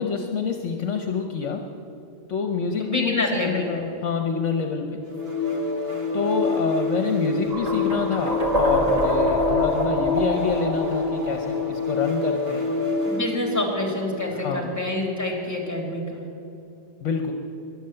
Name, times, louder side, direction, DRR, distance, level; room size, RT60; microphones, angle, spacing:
voice 1, 0.0-1.7 2.3-5.0 6.1-12.7 14.3-14.7 17.0-17.3, left 5 dB, 65° left, 4 dB, 1.2 m, -27 dB
voice 2, 2.8-3.8 13.1-16.2, left 2 dB, 10° left, 1 dB, 2.9 m, -27 dB
sound 1, 5.1-13.5, left 3 dB, 45° right, 1.8 m, -27 dB
sound 2, 7.5-12.4, equal, 30° right, 2.0 m, -26 dB
13.5 x 11.5 x 8.8 m, 2.8 s
omnidirectional pair, 1.4 m